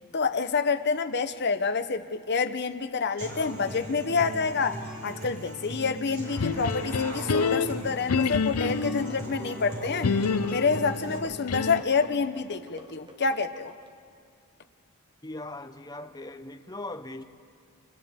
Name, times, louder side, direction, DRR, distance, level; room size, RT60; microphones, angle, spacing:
voice 1, 0.1-10.1 10.5-13.7, left 5 dB, 50° left, 0.9 m, -28 dB
Human voice / Acoustic guitar, 3.2-11.2, right 1 dB, 75° right, 5.2 m, -38 dB
sound 1, 6.4-9.2 10.0-12.0, left 5 dB, 85° left, 0.6 m, -28 dB
sound 2, 7.9-14.0, right 1 dB, 20° right, 1.2 m, -50 dB
voice 2, 15.2-17.2, left 2 dB, 15° left, 0.8 m, -39 dB
29.5 x 28.5 x 3.7 m
head